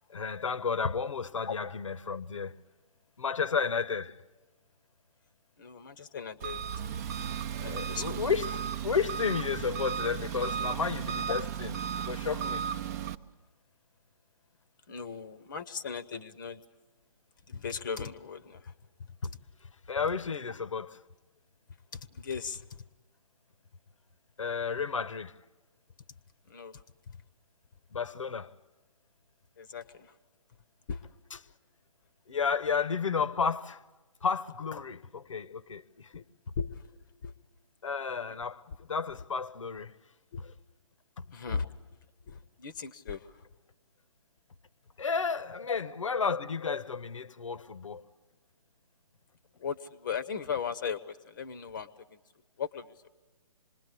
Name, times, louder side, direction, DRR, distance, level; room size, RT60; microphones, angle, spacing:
voice 1, 0.1-2.5 3.2-4.2 7.5-11.8 12.1-12.7 19.9-20.9 24.4-25.4 27.9-28.5 32.3-33.8 34.2-36.2 37.8-39.9 41.2-41.3 45.0-48.0, left 5 dB, 60° left, 1.0 m, -32 dB
voice 2, 5.6-6.7 7.2-7.3 7.6-8.2 14.9-16.6 17.5-18.7 19.2-19.4 21.9-22.8 26.5-27.2 29.6-30.1 30.9-31.1 36.1-36.2 36.6-36.9 37.2-37.3 40.3-40.4 41.3-41.9 42.3-43.4 45.7-45.8 49.6-52.2 52.6-53.1, left 6 dB, 35° left, 0.9 m, -38 dB
Engine, 6.4-13.2, right 8 dB, 30° right, 0.7 m, -35 dB
26.5 x 21.0 x 8.3 m
figure-of-eight pair, 135°, 18 cm